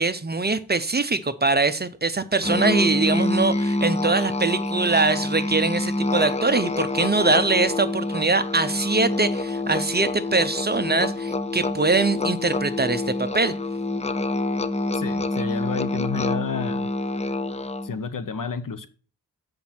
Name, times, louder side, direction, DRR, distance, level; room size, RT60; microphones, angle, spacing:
voice 1, 0.0-13.5, right 3 dB, 25° right, 0.6 m, -23 dB
Musical instrument, 2.4-18.0, left 2 dB, 20° left, 0.5 m, -27 dB
voice 2, 14.9-16.9 17.8-18.9, left 5 dB, 60° left, 0.8 m, -30 dB
7.8 x 5.2 x 5.7 m
wide cardioid pair, 105°, 37 cm